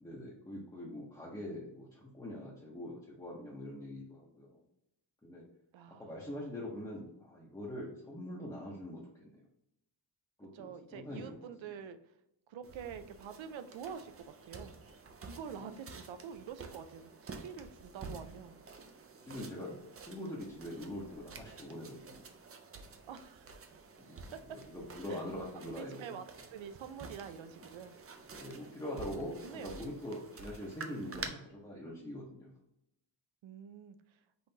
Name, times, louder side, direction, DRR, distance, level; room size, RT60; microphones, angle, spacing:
voice 1, 0.0-4.6 5.2-5.4 6.0-9.4 10.4-11.4 15.5-15.6 19.2-22.2 24.1-26.2 28.3-32.5, left 1 dB, 10° left, -5 dB, 0.7 m, -43 dB
voice 2, 5.7-6.1 10.5-12.0 12.5-14.7 15.2-18.6 19.6-19.8 23.0-23.8 25.1-25.2 25.5-28.0 29.4-30.2 33.4-34.2, right 7 dB, 85° right, 10 dB, 0.6 m, -47 dB
sound 1, 12.6-31.3, right 4 dB, 30° right, 0.4 m, -50 dB
5.5 x 3.1 x 2.7 m, 0.83 s
wide cardioid pair, 180°, 45 cm